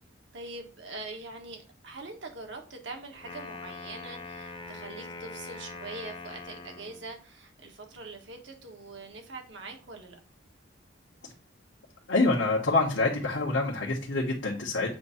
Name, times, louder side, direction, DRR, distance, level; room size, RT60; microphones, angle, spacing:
voice 1, 0.3-10.2, right 3 dB, 70° right, 3 dB, 1.4 m, -43 dB
Wind instrument woodwind instrument, 3.1-7.1, left 3 dB, 25° left, 0.8 m, -42 dB
voice 2, 12.1-14.9, left 3 dB, 90° left, -4 dB, 1.3 m, -26 dB
7.7 x 2.7 x 5.6 m, 0.39 s
head